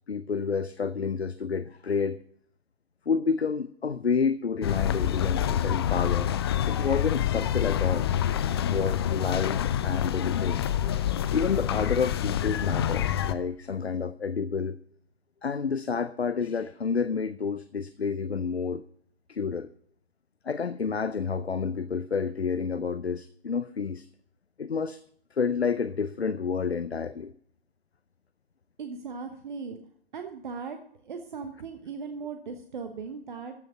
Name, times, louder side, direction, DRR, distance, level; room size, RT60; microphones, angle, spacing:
voice 1, 0.1-2.2 3.1-6.3 6.7-8.1 8.6-10.9 11.3-14.8 15.4-18.8 19.3-19.7 20.4-24.1 24.6-25.0 25.3-27.3, left 5 dB, 80° left, 14 dB, 0.7 m, -29 dB
sound 1, 4.6-13.3, left 10 dB, 25° left, 0.5 m, -27 dB
voice 2, 28.8-29.8 30.1-30.8 31.0-33.5, right 5 dB, 50° right, 7 dB, 1.1 m, -38 dB
14.5 x 6.3 x 5.4 m, 0.64 s
figure-of-eight pair, 120°, 31 cm